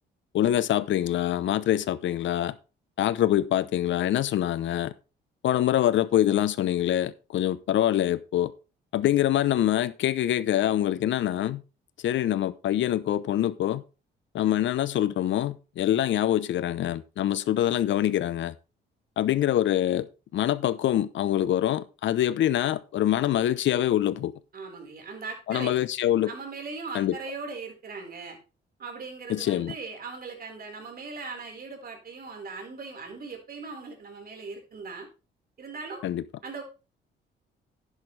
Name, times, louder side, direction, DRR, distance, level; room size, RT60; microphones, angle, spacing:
voice 1, 0.3-2.5 3.0-4.9 5.4-8.5 8.9-11.6 12.0-13.8 14.3-18.5 19.2-20.1 20.3-24.3 25.5-26.3 26.9-27.1 29.3-29.7 36.0-36.2, left 12 dB, 70° left, 0.9 m, -25 dB
voice 2, 24.5-25.7 26.2-28.4 28.8-35.1 35.6-36.0 36.4-36.6, right 4 dB, 50° right, 4.8 m, -39 dB
11.0 x 10.5 x 3.4 m
cardioid pair, 90°, 20 cm